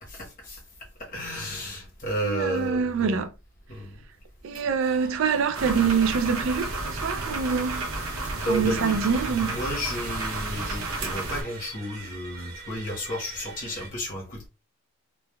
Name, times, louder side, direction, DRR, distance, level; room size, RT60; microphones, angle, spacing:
voice 1, 0.0-0.6 1.0-3.2 3.7-3.9 8.4-8.9 9.2-14.5, equal, 40° left, 1.0 m, -32 dB
voice 2, 2.2-3.3 4.4-7.9 8.5-9.6, right 6 dB, 65° right, 0.3 m, -25 dB
sound 1, 4.8-13.9, right 3 dB, 45° right, 0.9 m, -44 dB
sound 2, 5.5-11.4, right 2 dB, 80° right, 0.7 m, -32 dB
3.3 x 2.2 x 2.2 m
head